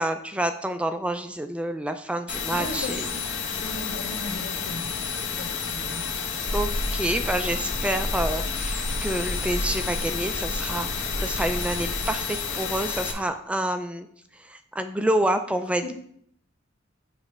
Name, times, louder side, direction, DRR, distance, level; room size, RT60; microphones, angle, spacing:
voice 1, 0.0-3.1 6.5-14.1 14.3-15.9, right 1 dB, 5° right, 8 dB, 0.3 m, -28 dB
sound 1, 2.3-13.1, left 6 dB, 60° left, 1.0 m, -31 dB
voice 2, 2.5-3.2 3.5-6.1 15.8-15.9, left 2 dB, 85° left, -3 dB, 1.8 m, -37 dB
sound 2, 6.4-12.1, equal, 20° left, 1.1 m, -32 dB
7.1 x 3.2 x 6.1 m, 0.67 s
head